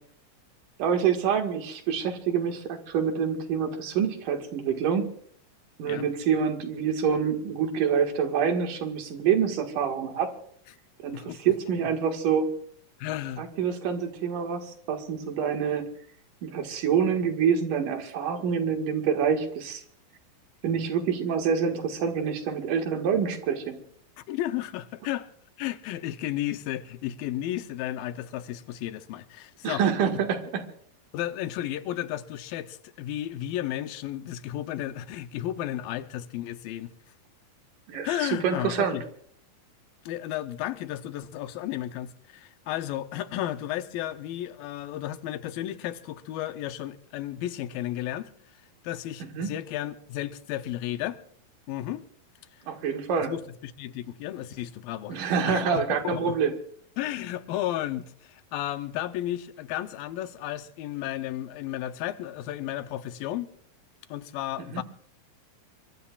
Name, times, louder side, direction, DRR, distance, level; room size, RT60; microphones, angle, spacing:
voice 1, 0.8-5.1 5.8-10.3 11.0-12.5 13.4-15.8 16.4-19.8 20.6-23.8 29.6-30.6 37.9-39.0 49.3-49.5 52.7-53.3 55.1-56.5 64.7-64.8, right 7 dB, 70° right, 3.2 m, -26 dB
voice 2, 13.0-13.5 24.2-25.3 25.6-30.2 31.1-36.9 38.0-39.0 40.1-48.3 48.8-51.2 51.7-52.0 53.2-55.2 55.5-56.4 57.0-63.5 64.1-64.8, left 13 dB, 90° left, 2.6 m, -33 dB
24.5 x 23.0 x 2.4 m
omnidirectional pair, 4.0 m